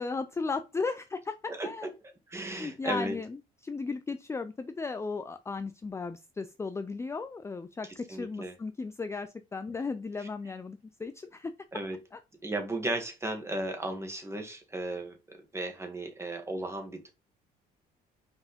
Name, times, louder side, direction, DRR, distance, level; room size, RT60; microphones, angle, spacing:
voice 1, 0.0-1.9 2.6-3.4 3.6-11.5, left 4 dB, 15° left, 0.5 m, -35 dB
voice 2, 2.3-3.2 7.8-8.6 10.2-10.3 11.7-12.0 12.4-17.1, right 1 dB, 15° right, 2.1 m, -35 dB
5.6 x 4.8 x 5.1 m
cardioid pair, 110°, 17 cm